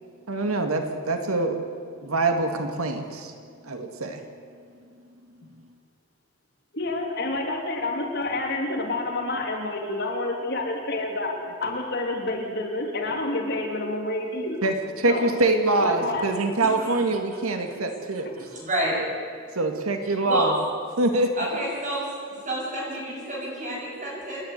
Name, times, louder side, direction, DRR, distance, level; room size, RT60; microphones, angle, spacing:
voice 1, 0.3-1.6 2.0-3.3 3.6-4.2 14.6-18.3 19.5-20.5 21.0-21.3, right 2 dB, 90° right, 5 dB, 2.0 m, -24 dB
voice 2, 6.7-11.3 11.6-14.6 15.1-15.3 15.8-16.2 18.2-18.4, left 2 dB, 50° left, 1 dB, 3.3 m, -28 dB
voice 3, 18.5-19.0 20.2-20.5 21.3-22.0 22.4-24.4, right 1 dB, 35° right, -3 dB, 7.6 m, -29 dB
29.0 x 10.5 x 9.6 m, 2.3 s
head